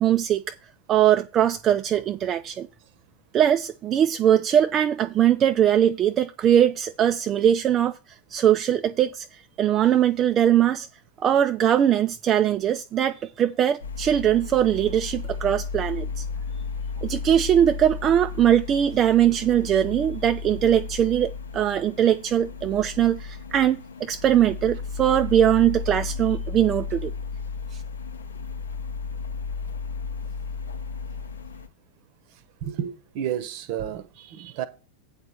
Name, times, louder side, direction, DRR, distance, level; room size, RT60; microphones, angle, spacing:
voice 1, 0.0-0.4 0.9-2.7 3.3-8.0 8.3-10.9 11.2-16.2 17.0-27.1 27.7-27.8, right 10 dB, 30° right, 0.4 m, -21 dB
sound 1, 13.8-31.7, left 5 dB, 70° left, 0.7 m, -34 dB
voice 2, 32.6-34.7, right 10 dB, 45° right, 0.9 m, -31 dB
8.7 x 4.3 x 7.2 m
figure-of-eight pair, 90°, 0 cm